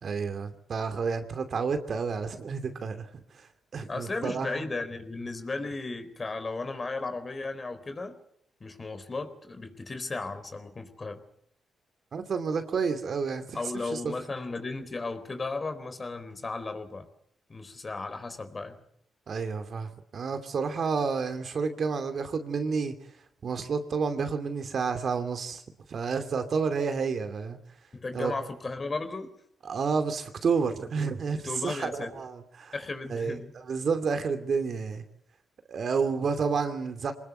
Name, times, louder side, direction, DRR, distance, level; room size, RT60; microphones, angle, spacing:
voice 1, 0.0-3.1 3.4-3.5 3.7-4.7 12.1-13.6 13.9-14.1 19.3-22.9 23.4-25.6 25.9-27.6 28.1-28.3 29.6-32.7 33.1-33.4 33.7-35.0 35.7-37.1, right 5 dB, 55° right, 8 dB, 2.7 m, -30 dB
voice 2, 3.9-8.2 8.6-11.2 13.5-17.1 17.5-18.8 27.9-29.4 31.4-32.1 32.7-33.5, left 3 dB, 35° left, 9 dB, 4.0 m, -35 dB
24.0 x 20.0 x 8.3 m, 0.71 s
cardioid pair, 70°, 0 cm